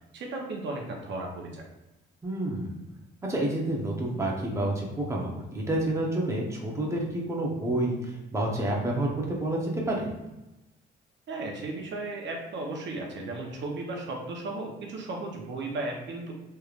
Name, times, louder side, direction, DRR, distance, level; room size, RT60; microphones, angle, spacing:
voice 1, 0.1-1.6 11.3-16.3, right 2 dB, 65° right, 0 dB, 0.8 m, -35 dB
voice 2, 2.2-2.7 3.3-10.1, right 1 dB, 15° right, -2 dB, 0.8 m, -29 dB
3.3 x 3.3 x 2.4 m, 1.0 s
cardioid pair, 90°, 20 cm